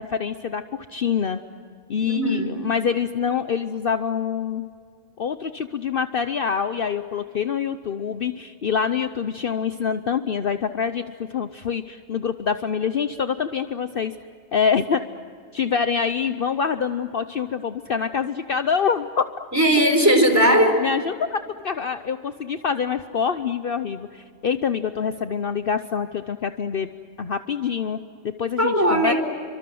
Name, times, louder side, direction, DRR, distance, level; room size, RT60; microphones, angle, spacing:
voice 1, 0.0-1.4 1.9-4.7 5.2-11.0 11.3-14.1 14.5-15.0 15.5-19.2 20.8-26.9 27.2-28.0 28.2-29.1, left 6 dB, 50° left, 10 dB, 0.9 m, -25 dB
voice 2, 2.0-2.6 19.5-20.8 28.6-29.1, right 1 dB, 15° right, 5 dB, 4.1 m, -18 dB
29.5 x 25.0 x 7.8 m, 2.2 s
omnidirectional pair, 1.2 m